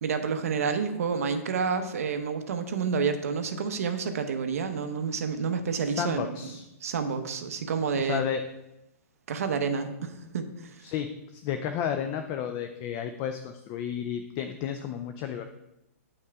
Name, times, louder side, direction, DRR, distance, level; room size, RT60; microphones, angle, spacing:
voice 1, 0.0-6.4 6.8-8.2 9.3-10.8, right 5 dB, 70° right, 7 dB, 0.9 m, -29 dB
voice 2, 5.8-6.6 7.9-8.4 10.8-15.5, left 8 dB, 25° left, 8 dB, 0.3 m, -32 dB
9.5 x 5.4 x 3.5 m, 0.92 s
hypercardioid pair, 165°, 8 cm